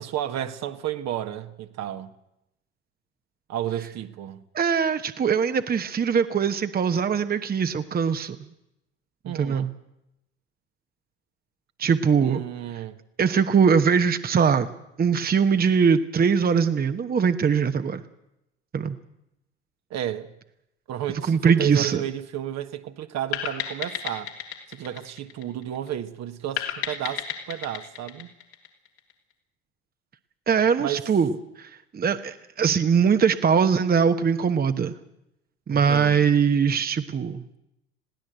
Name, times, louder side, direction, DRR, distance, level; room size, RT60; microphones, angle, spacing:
voice 1, 0.0-2.1 3.5-4.4 9.2-9.7 12.2-13.0 19.9-20.3 20.9-24.3 24.7-28.3 30.8-31.0 35.7-36.2, right 11 dB, 50° right, 1.5 m, -32 dB
voice 2, 4.5-8.4 9.3-9.7 11.8-12.4 13.2-14.7 15.0-18.0 18.7-19.0 21.3-22.0 30.5-31.3 31.6-34.9 35.7-37.4, right 6 dB, 30° right, 1.1 m, -21 dB
sound 1, 23.3-25.9 26.6-29.1, left 9 dB, 75° left, 3.1 m, -33 dB
21.0 x 16.5 x 8.0 m
hypercardioid pair, 70°, 33 cm